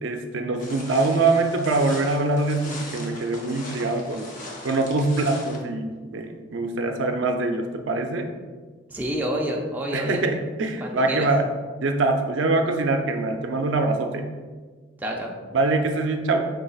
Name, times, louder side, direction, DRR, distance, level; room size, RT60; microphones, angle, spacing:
voice 1, 0.0-4.3 4.6-8.3 9.9-11.5 11.8-14.3 15.5-16.5, right 3 dB, 75° right, 4 dB, 0.5 m, -24 dB
sound 1, 0.6-5.6, left 2 dB, 40° left, 0.7 m, -39 dB
voice 2, 8.9-10.2 10.8-11.3 15.0-15.3, equal, 10° right, -1 dB, 0.4 m, -28 dB
5.2 x 3.8 x 2.3 m, 1.4 s
head